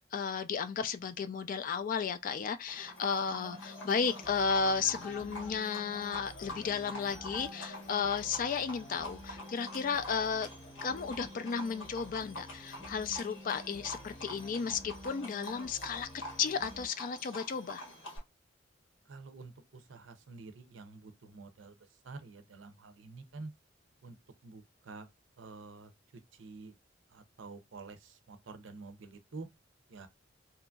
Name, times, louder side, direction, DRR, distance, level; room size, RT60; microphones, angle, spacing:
voice 1, 0.1-10.5 10.8-17.8, left 6 dB, 45° left, 0.3 m, -34 dB
Livestock farm animals working animals, 2.7-18.2, left 1 dB, 90° left, 1.2 m, -46 dB
sound 1, 3.3-16.9, equal, 10° right, 0.8 m, -51 dB
voice 2, 19.1-21.8 22.0-23.5 24.0-24.2 24.4-25.1 25.4-25.9 26.3-26.7 27.1-29.5 29.9-30.1, right 3 dB, 75° right, 0.5 m, -48 dB
2.8 x 2.5 x 2.3 m
head